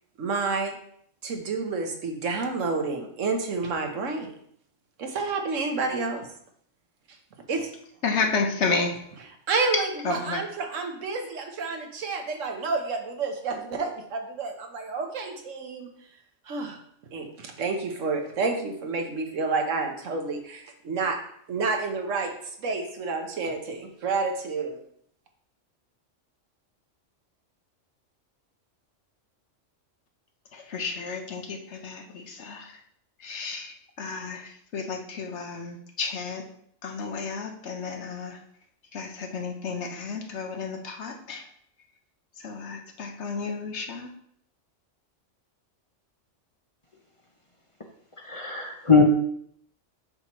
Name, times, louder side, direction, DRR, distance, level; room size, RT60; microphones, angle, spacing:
voice 1, 0.2-0.8 1.2-4.3 5.0-6.3 7.5-7.7 9.5-15.9 16.4-16.8 17.1-21.2 21.5-24.8, right 4 dB, 80° right, 4 dB, 1.3 m, -29 dB
voice 2, 8.0-9.0 9.7-10.4 30.5-32.8 33.2-36.4 36.8-38.4 38.9-41.5 42.4-44.1, left 4 dB, 65° left, 4 dB, 1.2 m, -32 dB
voice 3, 48.3-49.0, left 5 dB, 30° left, 2 dB, 0.6 m, -20 dB
7.6 x 6.0 x 3.0 m, 0.67 s
omnidirectional pair, 1.3 m